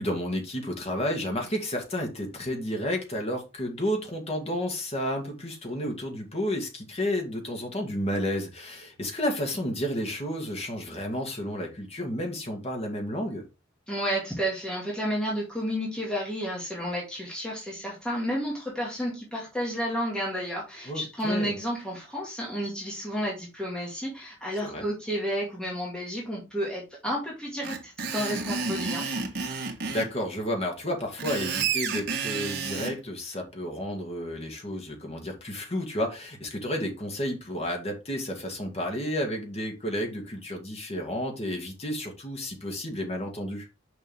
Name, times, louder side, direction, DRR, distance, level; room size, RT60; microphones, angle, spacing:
voice 1, 0.0-13.4 20.9-21.5 24.6-24.8 29.6-43.7, equal, 30° left, 2.2 m, -31 dB
voice 2, 13.9-29.1, equal, 5° left, 2.1 m, -31 dB
Screech, 27.6-30.1 31.0-32.9, right 5 dB, 55° right, 1.6 m, -30 dB
6.6 x 5.4 x 3.7 m
head